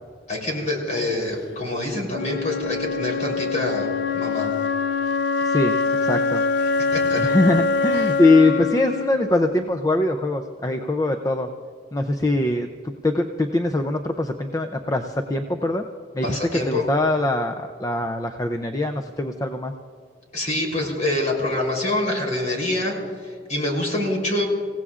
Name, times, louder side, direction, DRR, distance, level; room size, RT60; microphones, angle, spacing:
voice 1, 0.3-4.5 6.9-7.3 16.2-16.8 20.3-22.9 23.2-24.5, left 1 dB, 40° left, -1 dB, 3.6 m, -26 dB
Wind instrument woodwind instrument, 2.1-10.1, left 4 dB, 65° left, 0.5 m, -24 dB
voice 2, 5.4-5.7 6.0-6.4 7.2-11.5 11.9-15.8 16.1-16.4 16.7-19.7, left 2 dB, 20° left, 5 dB, 0.5 m, -22 dB
26.5 x 16.5 x 2.5 m, 2.1 s
head